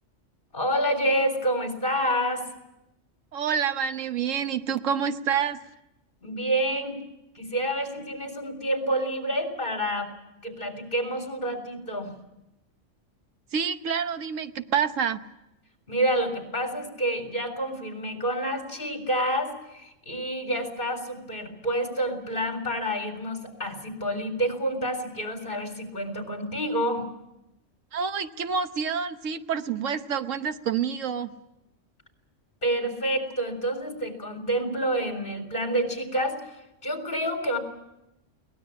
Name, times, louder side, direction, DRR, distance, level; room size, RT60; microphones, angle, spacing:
voice 1, 0.5-2.5 6.2-7.0 7.4-10.1 10.4-12.1 15.9-27.0 32.6-36.4 36.8-37.6, right 1 dB, 40° left, 5 dB, 4.1 m, -28 dB
voice 2, 3.3-5.6 13.5-15.2 27.9-31.3, right 7 dB, 85° right, 10 dB, 1.4 m, -28 dB
22.5 x 19.0 x 8.5 m, 0.89 s
omnidirectional pair, 1.3 m